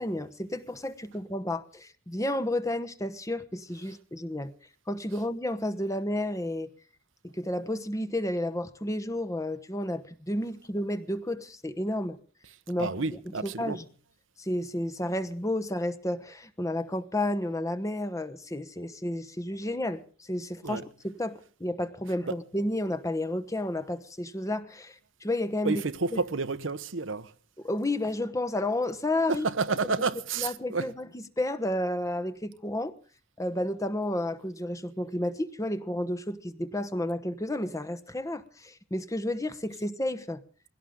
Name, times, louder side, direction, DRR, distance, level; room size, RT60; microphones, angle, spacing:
voice 1, 0.0-4.5 4.9-6.7 7.2-12.2 12.7-13.8 14.4-25.8 27.6-29.4 29.8-30.0 30.4-32.9 33.4-40.4, left 1 dB, 15° left, 1.0 m, -31 dB
voice 2, 12.8-13.8 20.6-20.8 22.3-22.4 25.6-27.3 29.3-30.9, right 4 dB, 85° right, 1.0 m, -30 dB
21.5 x 17.0 x 3.7 m
head